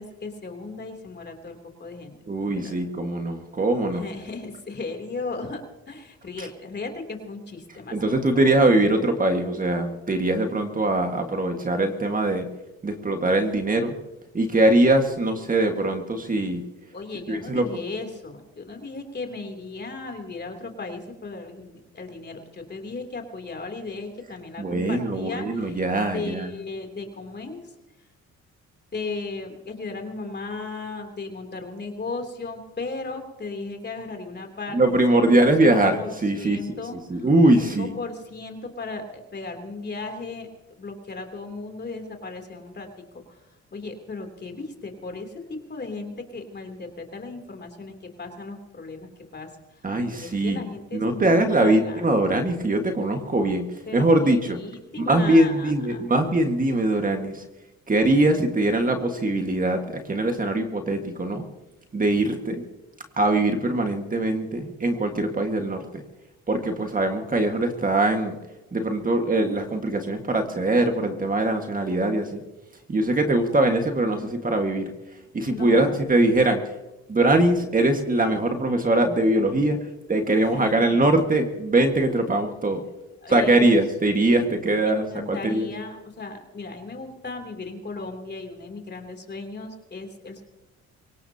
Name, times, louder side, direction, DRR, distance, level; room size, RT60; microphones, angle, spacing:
voice 1, 0.0-2.8 3.9-8.6 16.9-25.8 26.1-27.7 28.9-40.5 40.8-42.9 43.3-49.5 49.8-52.1 53.9-56.1 75.5-76.3 80.4-81.1 83.2-83.8 84.3-90.4, left 3 dB, 35° left, 4 dB, 3.1 m, -36 dB
voice 2, 2.3-4.0 6.4-6.5 7.9-12.5 12.8-13.9 14.3-16.6 17.3-17.7 24.6-26.5 34.7-36.8 37.1-37.9 49.8-50.6 50.9-53.6 53.9-54.6 55.1-57.4 57.9-61.4 61.9-62.6 63.2-66.0 66.5-68.3 68.7-72.4 72.9-74.9 75.3-76.6 77.1-79.8 80.1-82.8 83.3-85.7, right 2 dB, 25° right, 5 dB, 1.7 m, -22 dB
24.5 x 17.5 x 2.9 m, 1.0 s
cardioid pair, 90°, 30 cm